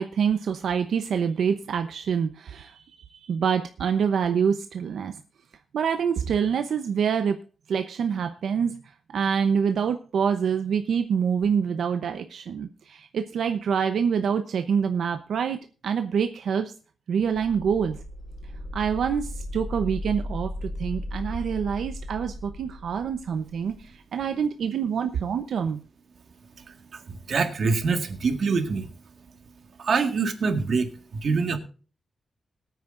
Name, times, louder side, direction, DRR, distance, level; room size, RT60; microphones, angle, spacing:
voice 1, 0.0-5.2 5.7-7.4 7.7-8.8 9.1-15.6 15.8-16.7 17.1-18.0 18.7-25.8, right 7 dB, 80° right, 7 dB, 0.8 m, -26 dB
sound 1, 17.2-23.8, left 1 dB, 15° left, 3.9 m, -36 dB
voice 2, 26.6-28.9 29.8-31.6, right 4 dB, 50° right, 6 dB, 1.8 m, -25 dB
21.5 x 9.2 x 2.6 m, 0.38 s
wide cardioid pair, 180°, 0 cm